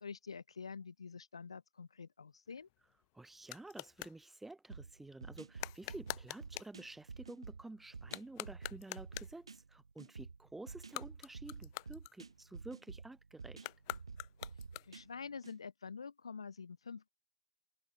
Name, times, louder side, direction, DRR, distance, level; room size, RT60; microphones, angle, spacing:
voice 1, 0.0-2.7 14.9-17.1, left 5 dB, 75° left, 1.6 m, -47 dB
sound 1, 2.5-4.2 5.6-6.8 8.0-9.4 10.8-12.6 13.6-15.2, left 26 dB, 50° left, 4.0 m, -46 dB
voice 2, 3.1-13.7, right 2 dB, 5° right, 2.6 m, -51 dB
sound 2, 4.7-15.6, right 4 dB, 80° right, 3.6 m, -51 dB
figure-of-eight pair, 85°, 3 cm